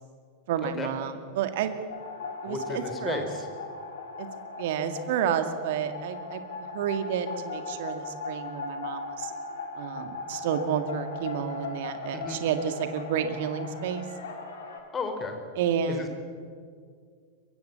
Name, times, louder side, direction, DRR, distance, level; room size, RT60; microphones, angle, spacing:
voice 1, 0.5-1.8 2.4-3.2 4.2-4.3 4.6-9.3 9.8-14.1 15.6-16.1, right 8 dB, 55° right, 8 dB, 2.1 m, -30 dB
sound 1, 1.9-14.8, left 4 dB, 60° left, 4.0 m, -38 dB
voice 2, 2.5-3.5 12.1-12.4 14.9-15.4 15.9-16.1, left 4 dB, 20° left, 6 dB, 4.1 m, -34 dB
23.0 x 22.5 x 8.1 m, 2.1 s
figure-of-eight pair, 90°, 0 cm